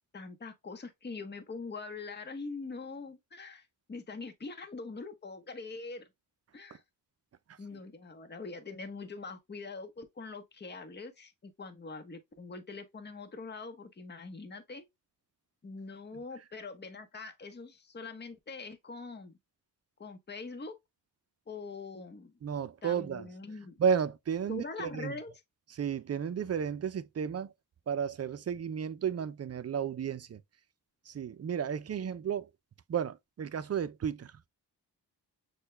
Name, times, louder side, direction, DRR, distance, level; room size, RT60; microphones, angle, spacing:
voice 1, 0.1-6.1 6.5-6.8 7.6-14.9 15.6-19.4 20.0-20.7 21.5-22.3 22.8-23.7 24.5-25.4, left 4 dB, 25° left, 0.9 m, -43 dB
voice 2, 22.4-23.3 23.8-25.1 25.8-27.5 27.9-30.4 31.1-32.5 32.9-34.3, right 7 dB, 40° right, 0.5 m, -33 dB
6.6 x 2.2 x 3.2 m
cardioid pair, 85°, 41 cm